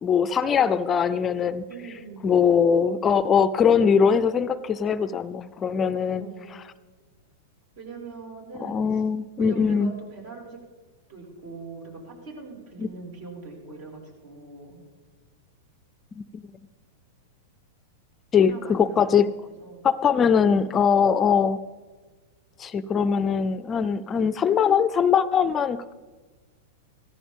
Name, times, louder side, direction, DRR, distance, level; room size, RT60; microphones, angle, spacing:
voice 1, 0.0-1.6 2.2-6.3 8.6-9.9 12.8-12.9 16.2-16.4 18.3-19.3 19.8-21.6 22.6-25.9, left 7 dB, 25° left, 15 dB, 0.5 m, -21 dB
voice 2, 1.7-2.3 6.1-6.6 7.8-9.0 9.4-10.6 11.1-14.8 18.4-19.3 19.6-19.9, right 4 dB, 60° right, 0 dB, 5.6 m, -41 dB
16.0 x 14.5 x 3.6 m, 1.3 s
hypercardioid pair, 125°, 0 cm